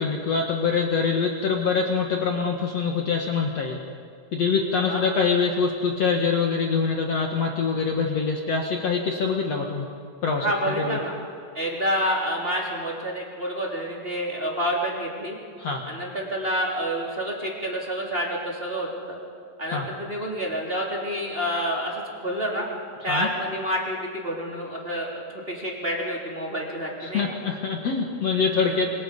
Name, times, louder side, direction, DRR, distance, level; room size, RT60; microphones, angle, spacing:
voice 1, 0.0-3.8 4.3-9.9 10.2-11.0 15.6-15.8 19.7-19.9 23.1-23.3 27.0-28.9, left 5 dB, 70° left, 1 dB, 1.5 m, -24 dB
voice 2, 10.4-11.1 11.5-15.4 15.8-19.2 19.6-22.6 23.0-27.4 28.7-28.8, equal, 15° right, -3 dB, 3.2 m, -28 dB
28.5 x 25.0 x 5.5 m, 2.3 s
omnidirectional pair, 5.6 m